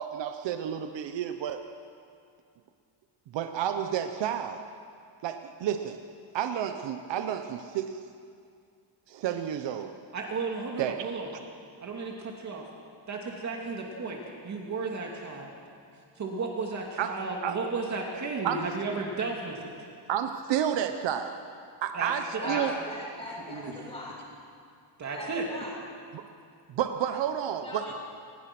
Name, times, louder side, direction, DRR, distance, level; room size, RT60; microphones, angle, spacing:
voice 1, 0.0-1.6 3.3-4.6 5.2-6.0 6.3-8.0 9.1-9.9 10.8-11.1 17.0-17.1 17.4-17.6 18.4-18.6 20.1-21.4 21.8-22.7 26.1-26.2 26.8-27.8, right 9 dB, 60° right, 7 dB, 1.1 m, -30 dB
voice 2, 10.1-11.3 11.8-12.6 13.1-15.5 16.2-19.9 21.9-22.6 23.5-23.9 25.0-25.5, right 4 dB, 35° right, 0 dB, 2.5 m, -34 dB
voice 3, 22.4-24.1 25.1-25.8 27.6-27.9, left 2 dB, 10° left, -4 dB, 6.1 m, -39 dB
28.5 x 20.5 x 6.1 m, 2.3 s
cardioid pair, 180°, 49 cm